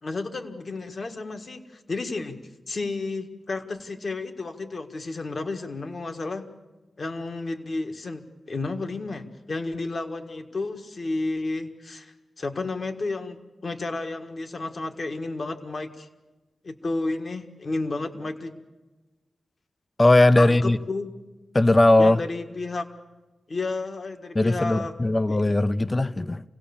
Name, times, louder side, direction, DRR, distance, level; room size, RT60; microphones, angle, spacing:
voice 1, 0.0-6.4 7.0-16.1 16.6-18.6 20.4-21.1 22.0-22.8 23.5-24.9 25.3-25.4, left 3 dB, 55° left, 6 dB, 1.7 m, -32 dB
voice 2, 20.0-20.8 21.5-22.2 24.3-26.4, left 2 dB, 30° left, 14 dB, 0.6 m, -19 dB
27.5 x 17.0 x 7.1 m, 1.1 s
cardioid pair, 60°, 0 cm